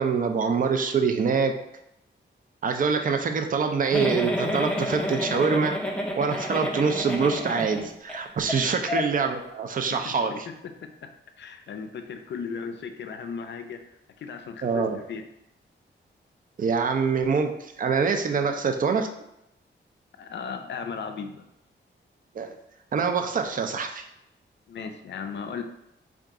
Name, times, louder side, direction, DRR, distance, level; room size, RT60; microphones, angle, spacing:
voice 1, 0.0-1.6 2.6-5.7 6.2-10.5 14.6-15.0 16.6-19.1 22.3-22.5 22.9-24.0, right 5 dB, 45° right, 6 dB, 0.4 m, -25 dB
Giggle, 3.9-8.2 8.5-8.6 8.9-9.0, left 1 dB, 5° left, 0.5 m, -29 dB
voice 2, 10.8-11.1 11.4-15.2 18.3-18.6 20.2-21.4 24.7-25.6, left 6 dB, 65° left, 7 dB, 0.4 m, -36 dB
3.8 x 2.4 x 3.5 m, 0.83 s
wide cardioid pair, 115°, 20 cm